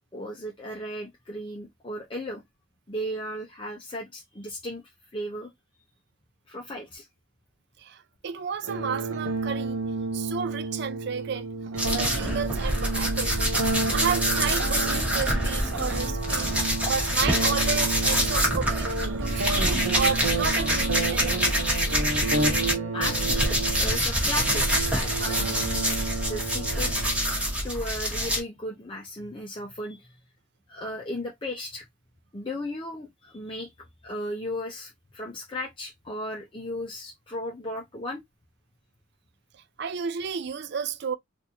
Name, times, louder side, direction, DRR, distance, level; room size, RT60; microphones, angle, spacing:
voice 1, 0.1-2.4 2.9-4.8 5.1-5.5 6.5-7.1 22.9-24.6 24.9-26.0 26.3-26.9 27.6-30.1 30.7-31.8 32.3-33.7 34.0-38.2, left 1 dB, 25° left, 0.6 m, -35 dB
voice 2, 7.8-9.8 10.1-11.5 11.8-13.5 13.9-18.9 19.2-21.6 39.8-41.2, right 6 dB, 55° right, 0.4 m, -32 dB
sound 1, 8.6-27.6, right 3 dB, 80° right, 0.9 m, -31 dB
sound 2, 11.8-22.7 23.0-28.4, equal, 5° right, 1.2 m, -26 dB
3.9 x 2.6 x 2.8 m
head